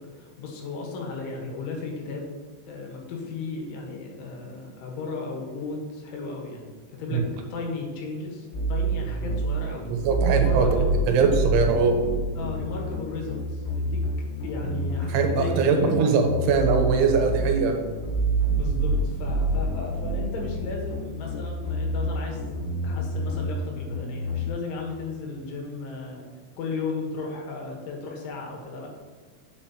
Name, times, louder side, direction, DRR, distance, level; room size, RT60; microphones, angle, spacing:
voice 1, 0.0-2.4 2.7-6.7 7.0-7.2 7.5-9.9 10.3-11.0 12.4-14.0 14.4-15.9 18.5-22.4 22.8-26.3 26.6-28.9, left 4 dB, 80° left, 0 dB, 3.7 m, -35 dB
sound 1, 8.5-24.5, right 2 dB, 65° left, 3.4 m, -28 dB
voice 2, 9.9-10.8 11.1-12.0 15.1-17.8, right 5 dB, 85° right, 3 dB, 3.3 m, -21 dB
9.1 x 7.4 x 2.9 m, 1.4 s
omnidirectional pair, 5.5 m